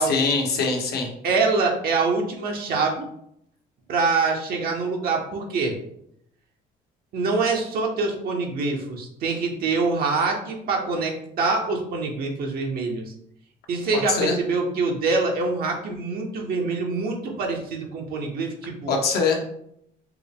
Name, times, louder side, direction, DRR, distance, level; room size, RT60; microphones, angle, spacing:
voice 1, 0.0-1.1 14.1-14.4 18.9-19.4, left 4 dB, 70° left, 1 dB, 1.0 m, -22 dB
voice 2, 1.2-3.1 3.9-5.7 7.1-13.1 13.7-18.9, right 4 dB, 60° right, 1 dB, 0.7 m, -25 dB
4.7 x 2.0 x 3.4 m, 0.74 s
cardioid pair, 110°, 17 cm